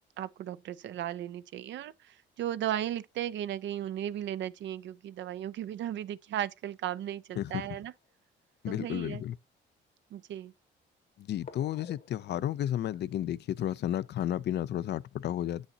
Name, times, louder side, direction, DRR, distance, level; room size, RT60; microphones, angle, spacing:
voice 1, 0.2-7.9 8.7-9.2 10.1-10.5, right 11 dB, 65° right, 0.5 m, -36 dB
sound 1, 6.2-6.3 7.5-8.8 9.5-9.6 11.4-14.6, left 6 dB, 45° left, 1.0 m, -55 dB
voice 2, 8.6-9.4 11.2-15.7, left 11 dB, 60° left, 0.4 m, -32 dB
9.0 x 6.3 x 2.7 m
cardioid pair, 90°, 20 cm